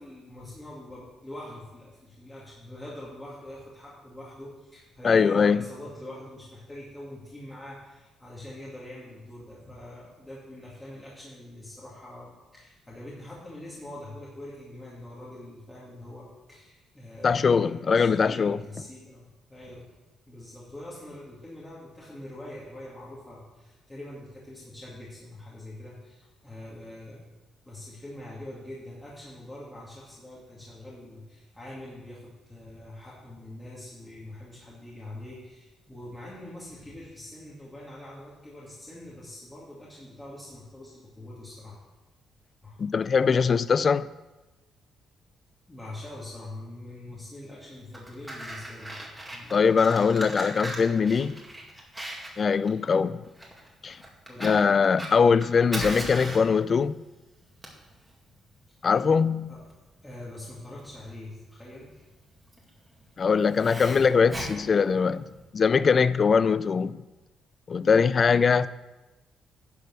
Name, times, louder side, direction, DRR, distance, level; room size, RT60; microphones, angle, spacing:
voice 1, 0.0-19.2 19.5-19.9 20.3-27.2 27.7-41.8 42.6-42.8 45.7-48.9 49.3-49.6 54.3-54.5 59.5-59.6 60.0-62.0, left 1 dB, 15° left, 2.3 m, -43 dB
voice 2, 5.0-5.7 17.2-18.6 42.8-44.1 49.5-51.4 52.4-53.3 53.8-54.0 54.4-57.0 58.8-59.5 63.2-65.3 65.5-67.0 67.7-68.7, left 5 dB, 45° left, 0.4 m, -22 dB
Fire, 47.7-65.5, right 1 dB, 10° right, 2.3 m, -40 dB
10.5 x 5.1 x 6.3 m
cardioid pair, 90°, 0 cm